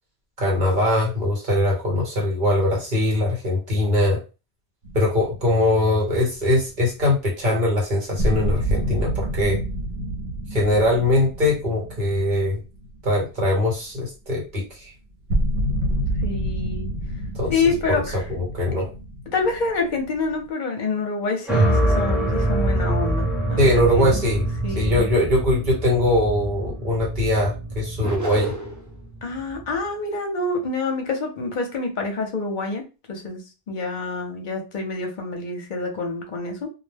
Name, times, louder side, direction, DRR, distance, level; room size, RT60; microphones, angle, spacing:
voice 1, 0.4-4.2 4.9-9.6 10.5-12.6 13.0-14.9 17.3-17.5 18.1-18.9 23.6-24.4 24.8-28.5, left 1 dB, 50° right, -3 dB, 1.2 m, -21 dB
sound 1, 4.8-6.2 6.5-6.6 7.6-7.7 8.2-13.5 13.8-13.9 14.5-14.6 15.3-20.5, equal, 75° right, 0.9 m, -28 dB
voice 2, 16.2-16.9 17.5-18.2 19.3-24.2 24.6-25.1 29.2-36.7, left 3 dB, 55° left, 3 dB, 0.8 m, -27 dB
sound 2, 21.5-29.7, right 1 dB, ahead, 1.0 m, -24 dB
sound 3, 28.0-28.9, right 2 dB, 30° right, 0.4 m, -29 dB
2.3 x 2.1 x 3.3 m, 0.31 s
omnidirectional pair, 1.0 m